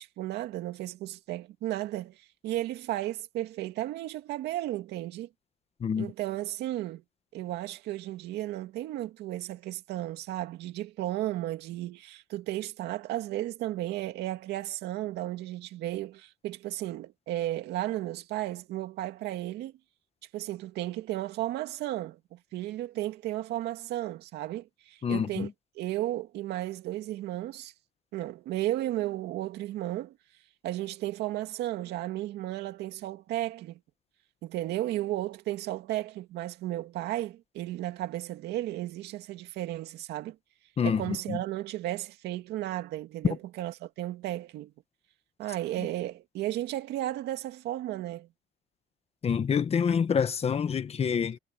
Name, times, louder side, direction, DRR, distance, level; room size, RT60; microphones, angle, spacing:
voice 1, 0.0-5.3 6.0-7.0 7.3-19.7 20.3-25.5 25.7-27.7 28.1-30.2 30.6-33.8 34.4-40.4 40.8-44.7 45.4-48.3, right 15 dB, 80° right, 2.3 m, -34 dB
voice 2, 5.8-6.1 25.0-25.5 40.8-41.4 49.2-51.4, left 7 dB, 35° left, 1.4 m, -27 dB
cardioid pair, 110°, 17 cm